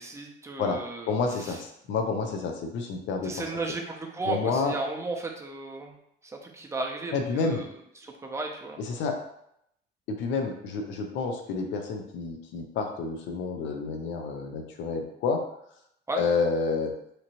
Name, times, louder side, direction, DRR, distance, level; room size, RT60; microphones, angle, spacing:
voice 1, 0.0-1.6 3.2-6.0 6.4-7.7 8.0-8.8 16.1-16.2, right 3 dB, 15° right, 1 dB, 0.5 m, -34 dB
voice 2, 1.1-3.5 4.3-4.8 7.1-7.6 8.8-9.2 10.1-15.4 16.1-16.9, left 4 dB, 75° left, 4 dB, 0.6 m, -29 dB
2.9 x 2.6 x 2.9 m, 0.75 s
cardioid pair, 120°, 19 cm